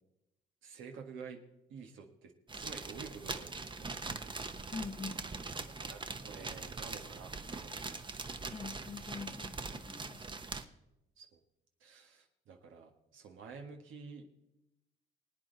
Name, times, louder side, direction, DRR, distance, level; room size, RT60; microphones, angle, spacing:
voice 1, 0.6-1.4 1.7-3.5 3.8-4.5 5.8-8.0 11.2-11.3 11.8-14.3, right 5 dB, 80° right, 1.7 m, -50 dB
sound 1, 2.5-10.6, right 3 dB, 25° right, 0.9 m, -42 dB
voice 2, 4.7-5.2 8.5-10.3, left 4 dB, 30° left, 0.9 m, -44 dB
24.0 x 9.1 x 4.0 m
cardioid pair, 90°, 20 cm